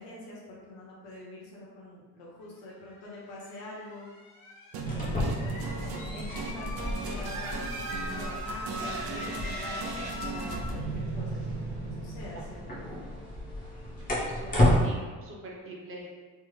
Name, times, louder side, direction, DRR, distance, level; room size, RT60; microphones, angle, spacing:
voice 1, 0.0-4.1 4.8-12.8, left 1 dB, 90° left, -4 dB, 1.0 m, -45 dB
sound 1, 3.0-10.6, left 2 dB, 45° left, 1.1 m, -43 dB
sound 2, 4.7-14.8, left 1 dB, 20° left, 0.8 m, -32 dB
sound 3, 4.7-13.0, right 4 dB, 70° right, 0.5 m, -37 dB
voice 2, 14.0-16.1, right 2 dB, 35° right, -2 dB, 0.7 m, -44 dB
3.3 x 2.0 x 3.1 m, 1.4 s
cardioid pair, 115°, 38 cm